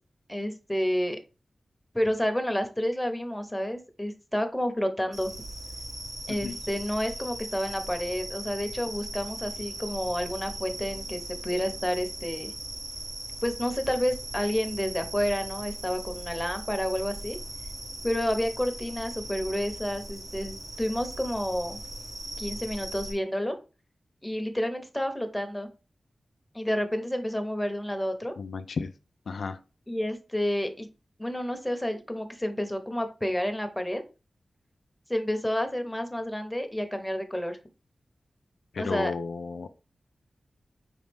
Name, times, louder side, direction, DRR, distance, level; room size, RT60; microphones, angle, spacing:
voice 1, 0.3-1.2 1.9-5.3 6.3-12.5 13.4-17.4 18.0-21.8 22.4-23.6 24.2-25.7 26.5-28.3 29.9-30.9 31.2-34.0 35.1-37.6 38.8-39.1, equal, 10° left, 6 dB, 0.8 m, -30 dB
sound 1, 5.1-23.1, right 1 dB, 75° right, 1.3 m, -39 dB
voice 2, 28.4-28.9 29.3-29.6 38.7-39.7, left 4 dB, 90° left, 8 dB, 0.3 m, -33 dB
3.8 x 3.1 x 3.4 m, 0.31 s
cardioid pair, 50°, 0 cm